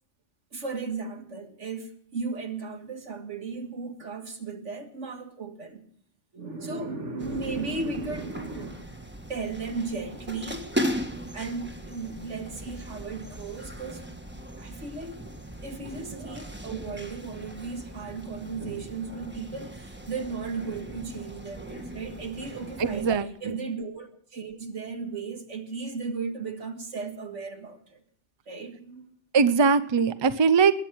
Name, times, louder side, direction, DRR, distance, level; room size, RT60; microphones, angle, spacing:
voice 1, 0.5-5.8 6.3-8.9 9.3-10.7 11.3-14.1 14.6-15.2 15.6-28.0 28.5-29.1, right 4 dB, 85° right, 2.1 m, -35 dB
sound 1, 7.2-23.2, equal, 10° right, 1.4 m, -38 dB
voice 2, 22.8-23.6 29.3-30.7, right 5 dB, 30° right, 0.6 m, -21 dB
21.0 x 8.9 x 6.2 m
omnidirectional pair, 1.2 m